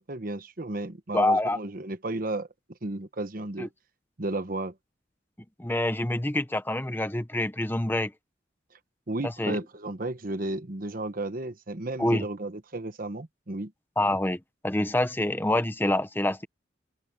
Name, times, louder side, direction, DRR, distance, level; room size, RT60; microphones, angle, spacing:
voice 1, 0.0-2.5 2.8-3.7 4.2-4.7 9.1-13.7, right 2 dB, 50° right, 1.2 m, -33 dB
voice 2, 1.1-1.6 3.6-3.7 5.6-8.1 9.2-9.6 12.0-12.3 14.0-16.5, left 1 dB, 10° left, 0.9 m, -26 dB
open air
head